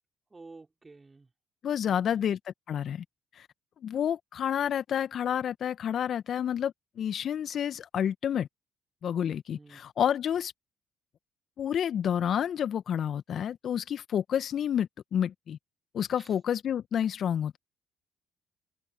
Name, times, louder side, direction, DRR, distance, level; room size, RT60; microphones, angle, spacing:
voice 1, 0.3-1.3 1.8-2.3 9.6-9.8 16.2-16.3, right 3 dB, 25° right, 5.6 m, -51 dB
voice 2, 1.6-3.0 3.3-3.5 3.8-8.5 9.0-10.5 11.6-15.6 15.9-17.6, left 9 dB, 55° left, 1.3 m, -29 dB
open air
hypercardioid pair, 50°, 0 cm